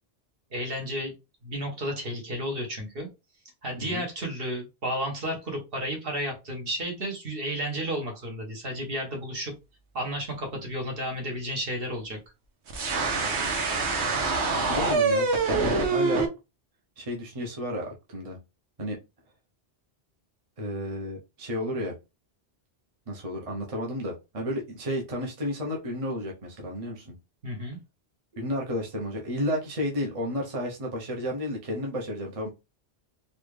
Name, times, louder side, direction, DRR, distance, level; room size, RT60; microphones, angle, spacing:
voice 1, 0.5-1.1 1.4-3.1 3.6-9.5 9.9-12.2 27.4-27.8, equal, 60° right, 1.4 m, -32 dB
sound 1, 12.7-16.3, right 3 dB, 85° right, 1.1 m, -25 dB
voice 2, 14.7-16.3 17.0-18.4 18.8-19.0 20.6-21.9 23.1-27.2 28.3-32.5, equal, 35° right, 0.8 m, -32 dB
4.1 x 2.3 x 3.2 m
omnidirectional pair, 1.1 m